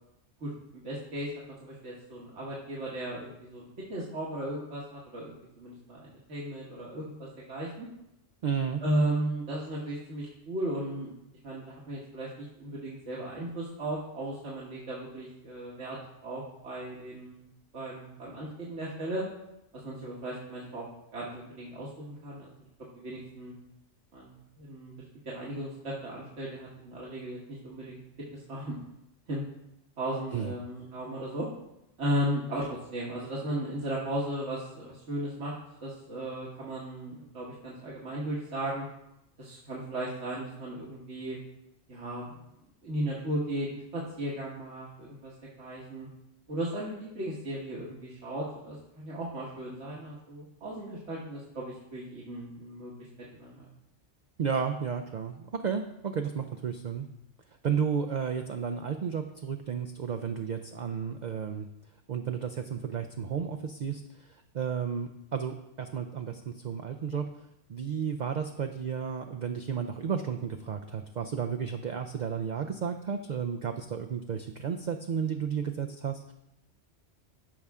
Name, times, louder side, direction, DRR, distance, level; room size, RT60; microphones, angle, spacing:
voice 1, 0.4-1.3 1.6-7.9 8.8-11.1 11.4-16.0 16.2-17.4 17.7-19.3 19.7-20.9 21.1-22.5 23.0-23.5 24.1-24.9 25.3-28.0 28.3-28.8 29.3-29.5 30.0-31.5 32.0-35.5 35.8-38.9 39.4-41.4 41.9-42.4 42.8-46.1 46.5-52.9 53.3-53.7, right 1 dB, 75° right, -6 dB, 1.8 m, -36 dB
voice 2, 8.4-8.8 30.3-30.5 54.4-57.1 57.6-61.7 62.1-64.3 64.5-67.2 67.7-76.3, right 7 dB, 55° right, 5 dB, 0.5 m, -32 dB
13.5 x 5.6 x 3.6 m, 0.85 s
omnidirectional pair, 1.2 m